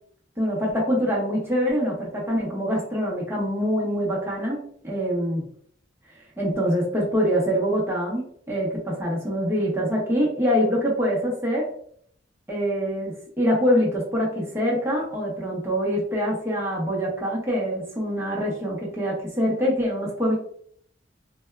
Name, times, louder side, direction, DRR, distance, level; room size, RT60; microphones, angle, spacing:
voice 1, 0.4-5.4 6.4-11.7 12.5-20.3, equal, 15° right, -4 dB, 0.9 m, -24 dB
4.3 x 2.2 x 2.2 m, 0.64 s
head